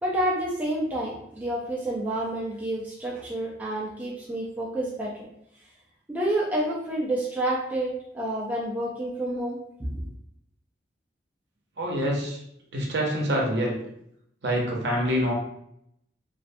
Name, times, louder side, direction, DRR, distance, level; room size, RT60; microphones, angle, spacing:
voice 1, 0.0-5.1 6.1-10.1, right 1 dB, 10° right, -5 dB, 0.3 m, -29 dB
voice 2, 11.8-12.4 12.7-13.8 14.4-15.3, equal, 65° right, -2 dB, 0.6 m, -26 dB
2.4 x 2.2 x 2.6 m, 0.76 s
head